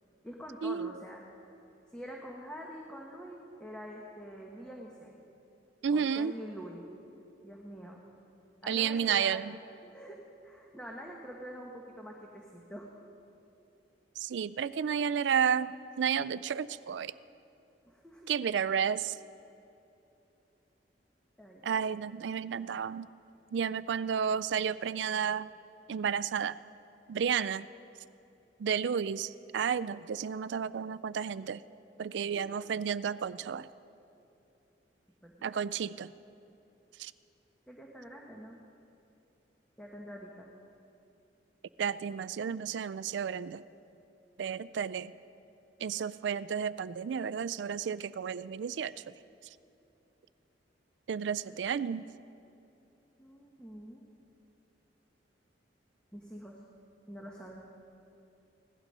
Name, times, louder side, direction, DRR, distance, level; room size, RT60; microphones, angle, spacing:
voice 1, 0.2-1.2 1.9-5.3 5.9-6.9 7.4-8.0 8.6-9.5 9.8-12.9 17.8-18.3 21.4-21.9 32.3-32.4 35.2-35.5 37.7-38.6 39.8-40.5 51.5-51.6 53.2-54.0 56.1-56.6 57.1-57.7, equal, 5° left, -1 dB, 1.1 m, -46 dB
voice 2, 5.8-6.3 8.7-9.5 14.2-17.1 18.3-19.2 21.6-23.1 23.5-25.5 25.9-26.6 27.1-27.7 28.6-31.6 32.0-33.7 35.4-36.1 37.0-37.1 41.8-43.6 44.4-45.1 45.8-48.9 51.1-52.1, right 7 dB, 70° right, 17 dB, 0.4 m, -32 dB
16.5 x 12.0 x 5.4 m, 2.8 s
head